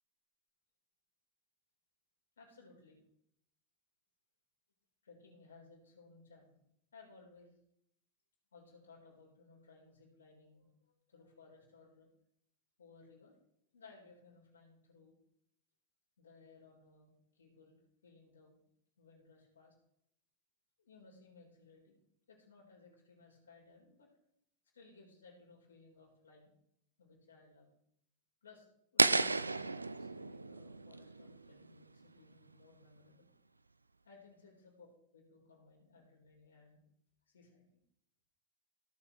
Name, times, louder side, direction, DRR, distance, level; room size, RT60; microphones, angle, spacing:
voice 1, 2.4-3.0 5.0-6.6 6.9-7.6 8.5-12.1 12.8-13.3 13.7-15.2 16.2-18.5 19.0-19.8 20.8-22.0 22.3-24.1 24.7-26.5 27.0-27.7 28.4-28.7 28.9-33.3 34.0-34.9 35.1-36.8 37.2-37.6, left 4 dB, 70° left, -1 dB, 4.3 m, -61 dB
sound 1, 29.0-32.0, right 3 dB, 80° right, 0.4 m, -33 dB
17.0 x 7.1 x 3.3 m, 0.74 s
figure-of-eight pair, 90°, 0 cm